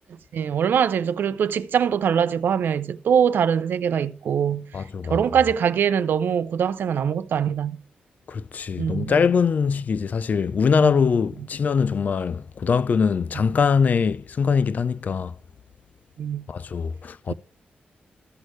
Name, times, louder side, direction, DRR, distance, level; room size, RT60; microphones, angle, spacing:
voice 1, 0.3-4.7 5.1-7.8 8.8-9.2 10.8-11.0 16.2-16.5 17.3-17.4, right 8 dB, 80° right, 0.5 m, -23 dB
voice 2, 4.7-5.2 8.3-15.3 16.5-17.3, left 6 dB, 50° left, 0.4 m, -22 dB
14.0 x 6.4 x 3.1 m
wide cardioid pair, 120°, 3 cm